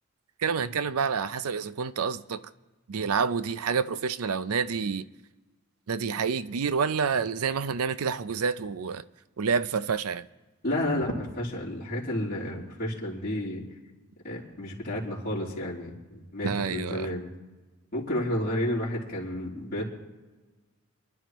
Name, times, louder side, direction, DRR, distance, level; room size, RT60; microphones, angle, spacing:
voice 1, 0.4-2.4 2.9-5.1 5.9-9.0 9.4-10.3 16.4-17.1, right 6 dB, 85° right, 0.5 m, -28 dB
voice 2, 10.6-13.6 14.2-17.3 17.9-19.9, left 1 dB, 40° left, 3.3 m, -31 dB
29.0 x 11.0 x 3.0 m
head